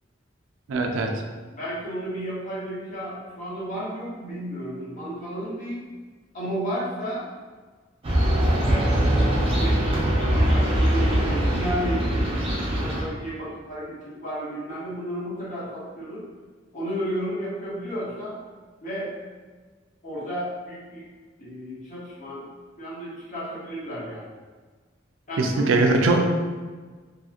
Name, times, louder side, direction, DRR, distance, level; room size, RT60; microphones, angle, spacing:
voice 1, 0.7-1.1 25.4-26.2, right 3 dB, 90° right, 3 dB, 0.3 m, -21 dB
voice 2, 1.5-5.8 6.3-7.3 8.6-9.9 10.2-12.4 12.8-16.2 16.7-18.4 18.8-19.1 20.0-21.0 21.4-22.5 22.8-24.3 25.3-26.1, equal, 40° left, -7 dB, 0.8 m, -33 dB
sound 1, 8.0-13.0, equal, 30° right, 0.5 m, -22 dB
2.8 x 2.7 x 2.4 m, 1.4 s
head